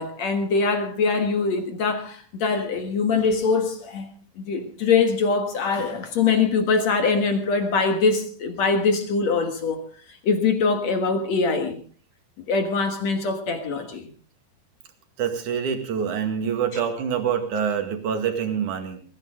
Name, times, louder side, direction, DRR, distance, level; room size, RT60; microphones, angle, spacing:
voice 1, 0.0-4.1 4.4-9.8 10.1-11.8 12.5-14.1, left 4 dB, 65° left, 6 dB, 1.8 m, -23 dB
voice 2, 15.2-19.0, right 7 dB, 50° right, 6 dB, 3.0 m, -26 dB
22.5 x 15.5 x 3.7 m, 0.40 s
omnidirectional pair, 5.3 m